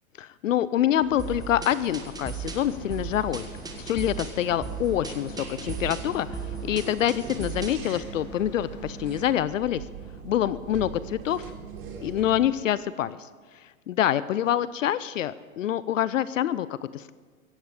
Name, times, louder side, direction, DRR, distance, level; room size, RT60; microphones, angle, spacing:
voice 1, 0.2-3.5 3.8-6.3 6.6-9.8 10.2-11.4 12.0-13.2 13.9-16.7 16.9-17.1, left 11 dB, 65° left, 17 dB, 0.7 m, -26 dB
sound 1, 1.0-9.3, left 1 dB, 25° left, 3.0 m, -45 dB
sound 2, 1.2-7.9, right 6 dB, 10° right, 1.6 m, -37 dB
sound 3, 2.5-12.5, right 6 dB, 45° right, 3.6 m, -42 dB
16.0 x 15.5 x 5.0 m, 1.5 s
hypercardioid pair, 110°, 42 cm